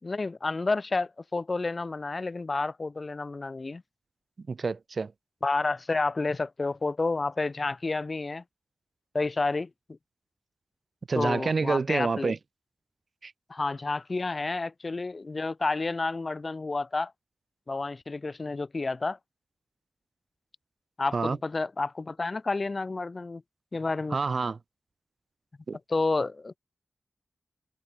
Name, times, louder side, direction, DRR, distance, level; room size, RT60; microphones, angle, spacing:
voice 1, 0.0-3.8 5.4-8.4 9.1-9.7 11.1-12.3 13.5-17.1 17.7-19.2 21.0-23.4 23.7-24.2 25.9-26.6, left 3 dB, 45° left, 3.5 m, -30 dB
voice 2, 4.5-5.1 11.1-12.4 13.2-13.3 21.1-21.4 24.1-24.6 25.7-25.8, right 4 dB, 60° right, 1.2 m, -28 dB
wide cardioid pair, 70°, 0 cm